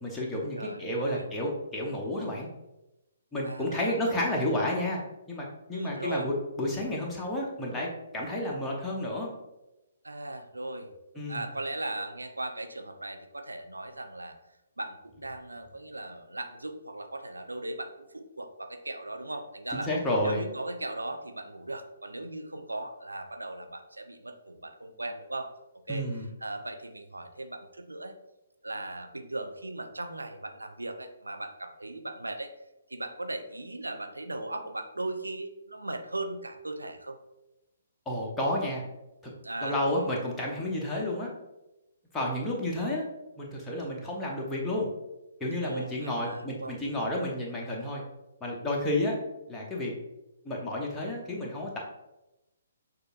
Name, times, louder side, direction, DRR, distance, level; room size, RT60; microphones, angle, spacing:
voice 1, 0.0-2.5 3.3-5.0 5.3-9.3 11.2-11.4 19.7-20.4 25.9-26.2 38.1-38.8 39.6-41.3 42.1-43.0 43.4-44.9 45.4-48.0 48.4-49.2 49.5-49.9 50.4-51.8, left 1 dB, 10° left, -3 dB, 0.8 m, -31 dB
voice 2, 0.6-1.3 3.4-3.9 5.7-6.3 10.0-10.9 11.3-14.3 14.8-19.9 20.2-25.5 25.9-26.1 26.4-28.2 28.6-32.5 32.9-37.2 39.4-40.1 45.6-46.8, right 2 dB, 80° right, 6 dB, 0.5 m, -38 dB
6.4 x 2.5 x 2.4 m, 0.95 s
figure-of-eight pair, 130°, 0 cm